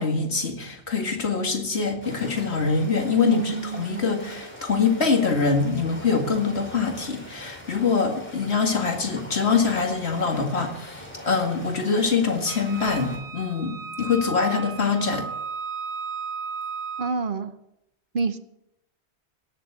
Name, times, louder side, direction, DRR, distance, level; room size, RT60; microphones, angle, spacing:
voice 1, 0.0-15.3, left 5 dB, 70° left, 4 dB, 2.4 m, -24 dB
sound 1, 2.0-13.2, equal, 10° left, 3.7 m, -43 dB
voice 2, 3.3-4.1 17.0-17.5 18.1-18.4, right 5 dB, 55° right, 11 dB, 1.0 m, -28 dB
Wind instrument woodwind instrument, 12.5-17.2, right 5 dB, 90° right, 4.8 m, -34 dB
17.5 x 7.3 x 8.2 m, 0.83 s
omnidirectional pair, 1.1 m